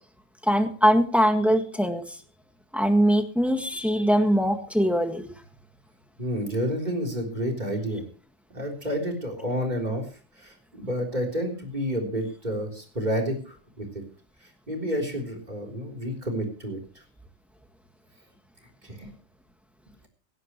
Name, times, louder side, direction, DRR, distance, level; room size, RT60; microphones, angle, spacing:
voice 1, 0.4-2.0 2.7-5.3, equal, ahead, 6 dB, 1.6 m, -22 dB
voice 2, 6.2-8.0 8.5-10.0 10.4-14.0 14.4-16.8 18.8-19.1, equal, 35° right, 3 dB, 3.9 m, -30 dB
17.5 x 16.5 x 3.1 m, 0.38 s
omnidirectional pair, 1.4 m